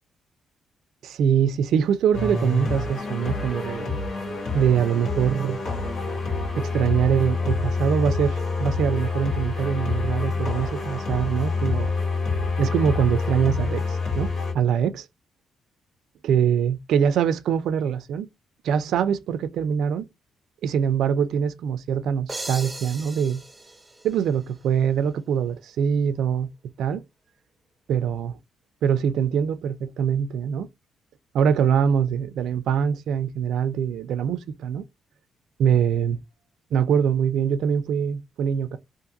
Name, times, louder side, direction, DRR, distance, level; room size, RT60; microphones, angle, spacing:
voice 1, 1.0-4.0 4.5-5.6 6.5-11.9 12.6-15.1 16.2-18.3 18.6-20.1 20.6-23.4 24.0-26.5 26.8-27.0 27.9-28.4 28.8-30.7 31.3-34.8 35.6-36.2 36.7-38.8, right 8 dB, 75° right, 0.4 m, -23 dB
sound 1, 2.1-14.5, left 3 dB, 70° left, 1.2 m, -27 dB
sound 2, 22.3-25.0, right 2 dB, 15° right, 0.7 m, -38 dB
2.5 x 2.4 x 2.6 m
cardioid pair, 90°, 0 cm